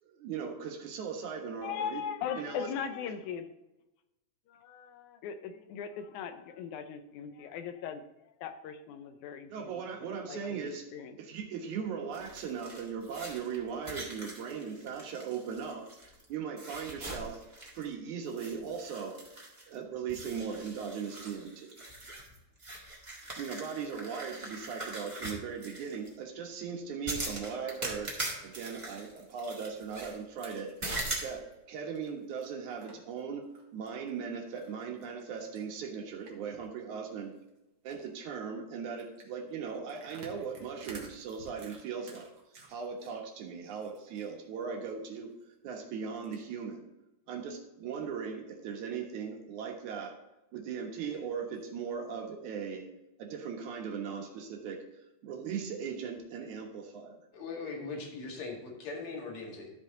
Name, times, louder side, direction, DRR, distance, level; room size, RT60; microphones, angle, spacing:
voice 1, 0.0-2.0 2.4-2.7 9.5-10.9 11.2-17.4 17.7-19.2 19.7-21.8 23.4-28.1 28.4-30.9 31.2-37.4 37.8-46.8 47.3-50.2 50.5-52.9 53.2-57.2, right 6 dB, 80° right, 2 dB, 2.8 m, -39 dB
voice 2, 1.6-3.5 4.5-9.8 10.3-11.2, left 7 dB, 85° left, 8 dB, 2.2 m, -39 dB
sound 1, 12.1-16.2 16.6-17.9 18.3-19.8 20.1-26.1 27.1-30.2 30.8-31.3, right 2 dB, 20° right, 1.6 m, -41 dB
sound 2, 30.1-33.2 33.5-34.1 34.6-36.7 37.0-37.1 37.3-37.5 37.9-38.2 39.0-43.1 43.5-44.3 44.6-44.7 45.1-45.2 46.2-46.4, right 4 dB, 45° right, 1.6 m, -53 dB
voice 3, 57.3-59.7, left 3 dB, 65° left, 0 dB, 3.1 m, -40 dB
13.0 x 5.3 x 3.8 m, 0.95 s
omnidirectional pair, 3.4 m